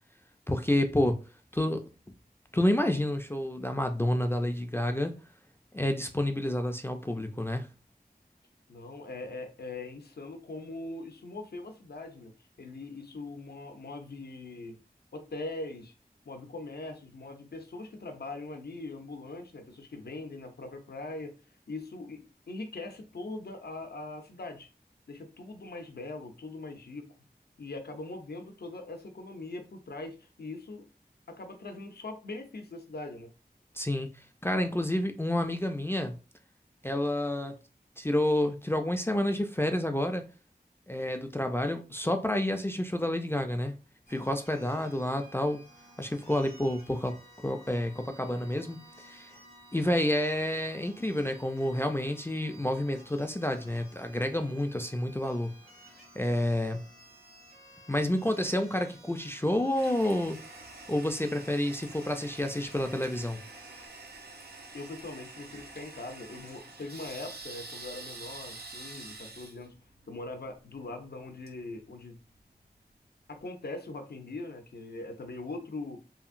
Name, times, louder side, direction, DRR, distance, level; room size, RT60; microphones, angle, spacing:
voice 1, 0.5-1.2 1.5-1.8 2.5-5.1 5.7-7.7 33.8-34.1 34.4-36.2 36.8-37.5 38.0-40.2 40.9-43.7 44.1-45.6 46.0-47.2 47.4-49.3 49.7-55.6 56.2-56.9 57.9-60.4 60.9-63.4, left 1 dB, 15° left, 0.3 m, -29 dB
voice 2, 8.7-12.3 12.6-14.8 15.1-15.9 16.3-21.4 21.7-24.7 25.1-27.1 27.6-30.9 31.3-33.3 64.7-69.7 70.1-72.2 73.3-76.1, left 2 dB, 80° left, 0.5 m, -41 dB
sound 1, 44.1-63.9, right 1 dB, 65° right, 1.4 m, -55 dB
Toilet flush, 59.8-72.4, right 3 dB, 80° right, 0.5 m, -47 dB
2.8 x 2.5 x 2.5 m
wide cardioid pair, 50°, 16 cm